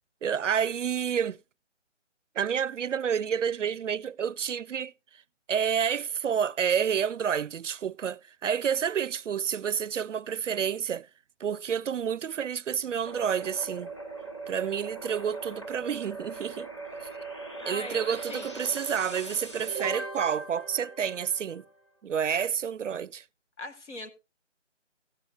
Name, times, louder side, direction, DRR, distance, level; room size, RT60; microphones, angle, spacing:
voice 1, 0.2-1.4 2.4-4.9 5.5-11.1 11.4-13.9 14.5-16.7 17.7-21.6 22.0-23.2, right 7 dB, 80° right, 0.5 m, -29 dB
sound 1, 13.1-21.7, right 3 dB, 25° left, 1.9 m, -40 dB
voice 2, 17.6-18.5 23.6-24.1, left 2 dB, 75° left, 1.5 m, -40 dB
15.5 x 13.0 x 2.2 m
figure-of-eight pair, 180°, 36 cm